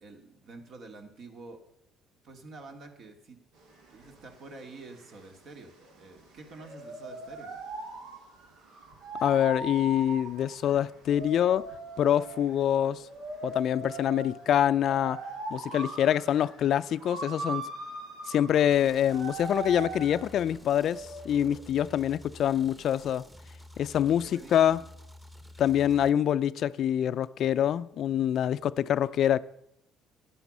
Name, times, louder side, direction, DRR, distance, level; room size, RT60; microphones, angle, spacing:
voice 1, 0.0-1.6 2.2-3.4 3.9-7.5 24.2-24.9, right 3 dB, 60° right, 2.3 m, -48 dB
sound 1, 3.6-21.6, right 2 dB, 85° right, 2.6 m, -40 dB
voice 2, 9.2-11.7 12.0-13.0 13.4-15.2 15.5-17.6 18.3-23.2 23.8-24.8 25.6-29.4, left 10 dB, 60° left, 0.4 m, -25 dB
sound 2, 18.7-26.1, left 1 dB, 5° right, 1.1 m, -50 dB
12.0 x 9.7 x 5.4 m
supercardioid pair, 85°, 0 cm